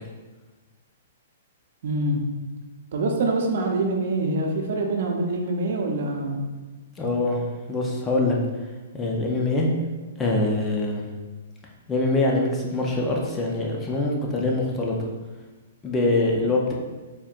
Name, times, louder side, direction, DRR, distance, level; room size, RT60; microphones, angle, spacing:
voice 1, 1.8-2.2 2.9-6.4, right 2 dB, 65° right, 1 dB, 0.7 m, -25 dB
voice 2, 7.0-7.4 7.7-8.4 8.9-9.7 10.2-11.1 11.9-15.1 15.8-16.7, left 2 dB, 15° left, -1 dB, 0.6 m, -24 dB
4.3 x 3.6 x 2.5 m, 1.2 s
hypercardioid pair, 130°, 0 cm